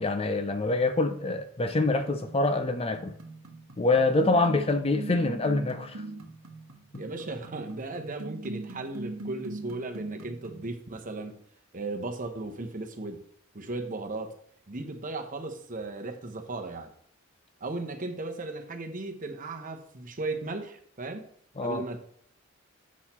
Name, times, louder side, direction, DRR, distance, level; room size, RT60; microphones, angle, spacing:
voice 1, 0.0-3.1 3.8-6.0 21.6-21.8, left 2 dB, 30° left, 0.5 m, -25 dB
sound 1, 2.2-10.7, right 2 dB, 70° right, 1.0 m, -41 dB
voice 2, 7.0-11.3 11.7-13.2 13.5-14.3 14.7-16.9 17.6-21.3 21.6-22.0, right 2 dB, 40° right, 1.0 m, -36 dB
7.3 x 6.4 x 4.3 m
head